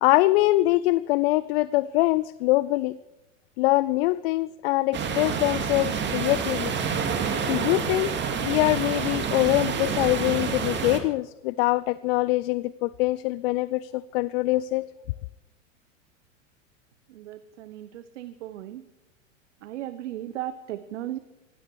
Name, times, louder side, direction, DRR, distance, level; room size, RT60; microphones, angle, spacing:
voice 1, 0.0-3.0 3.6-6.7 7.5-8.1 8.4-14.9, left 18 dB, 50° left, 18 dB, 0.5 m, -23 dB
sound 1, 4.9-11.0, right 6 dB, 30° right, 2.4 m, -28 dB
voice 2, 17.1-18.8 19.6-21.2, right 13 dB, 65° right, 13 dB, 1.0 m, -36 dB
18.5 x 16.5 x 4.8 m, 0.93 s
hypercardioid pair, 100°, 38 cm